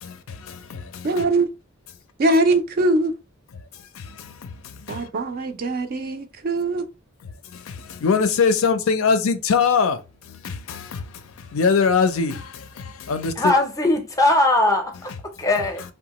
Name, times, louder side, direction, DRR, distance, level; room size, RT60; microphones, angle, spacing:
voice 1, 0.0-1.2 3.9-5.1 7.5-13.5, left 5 dB, 65° left, 0.4 m, -23 dB
voice 2, 1.0-1.5 2.2-3.1 4.9-6.8, right 2 dB, 45° right, 0.4 m, -21 dB
voice 3, 13.4-14.9 15.4-15.8, left 2 dB, 15° left, 0.5 m, -19 dB
2.9 x 2.1 x 2.8 m
head